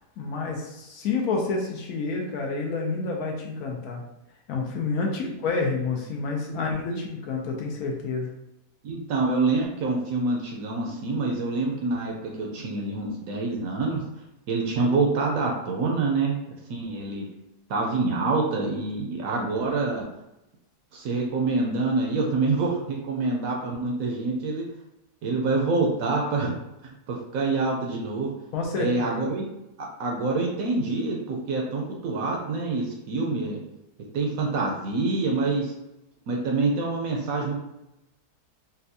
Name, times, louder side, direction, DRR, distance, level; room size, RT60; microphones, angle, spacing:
voice 1, 0.2-4.0 4.5-8.3 28.5-29.2, left 4 dB, 70° left, -1 dB, 1.0 m, -29 dB
voice 2, 8.8-14.0 14.5-16.3 16.7-17.3 17.7-20.1 20.9-24.6 25.2-26.5 27.1-28.3 28.8-29.4 30.0-33.6 34.1-35.7 36.3-37.5, right 3 dB, 70° right, 0 dB, 0.9 m, -26 dB
4.1 x 2.2 x 2.6 m, 0.90 s
omnidirectional pair, 1.7 m